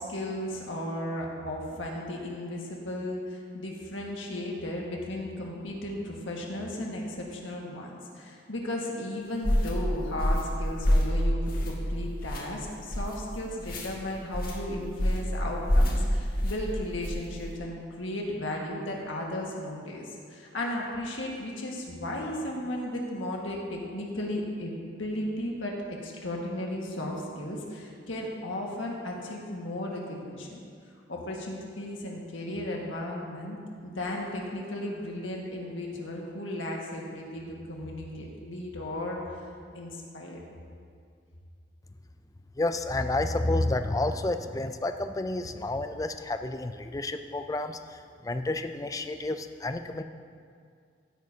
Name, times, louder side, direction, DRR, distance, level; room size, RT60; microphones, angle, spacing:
voice 1, 0.0-25.7 26.0-30.6 31.1-39.2 39.7-40.4, left 1 dB, 85° left, -1 dB, 1.7 m, -35 dB
sound 1, 9.4-9.7 10.2-10.5 10.8-11.1 11.5-11.9 12.2-12.4 12.9-13.2 13.6-13.9 14.3-14.6 15.0-15.3 15.7-16.0 16.3-16.6 17.0-17.3, equal, 50° left, 1.7 m, -25 dB
voice 2, 42.6-48.0 48.2-50.0, left 2 dB, 20° left, 8 dB, 0.4 m, -30 dB
15.5 x 9.3 x 2.8 m, 2.2 s
head